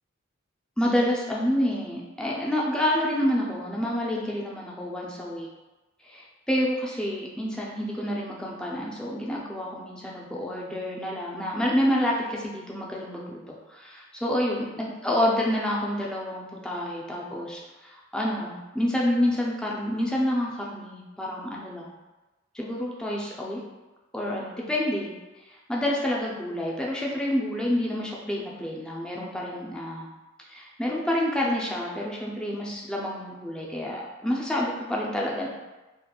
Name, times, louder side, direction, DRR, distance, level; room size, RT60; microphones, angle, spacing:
voice 1, 0.8-5.5 6.0-13.4 13.7-22.0 22.5-23.6 24.1-25.1 25.5-30.0 30.5-35.5, left 1 dB, 5° left, -3 dB, 0.3 m, -28 dB
2.8 x 2.4 x 2.2 m, 1.1 s
head